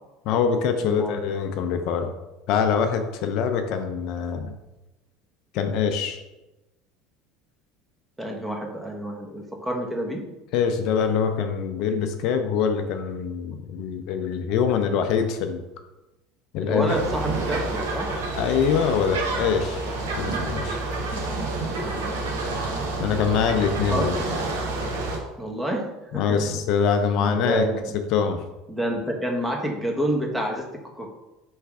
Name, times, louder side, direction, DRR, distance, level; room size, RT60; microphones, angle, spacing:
voice 1, 0.3-2.1 2.5-4.5 5.5-6.2 10.5-15.6 16.5-17.0 18.3-19.9 20.2-20.8 23.0-24.2 26.1-27.7 28.1-28.4, left 6 dB, 65° left, 7 dB, 0.4 m, -24 dB
voice 2, 0.8-1.2 8.2-10.2 16.6-18.1 21.1-21.3 21.7-22.5 23.9-24.1 25.4-25.8 26.1-26.6 27.2-27.9 28.7-30.7 30.9-31.1, right 1 dB, 10° right, 1 dB, 1.0 m, -29 dB
sound 1, 16.9-25.2, right 2 dB, 85° right, 0.8 m, -28 dB
3.3 x 3.2 x 4.7 m, 1.0 s
supercardioid pair, 95°, 0 cm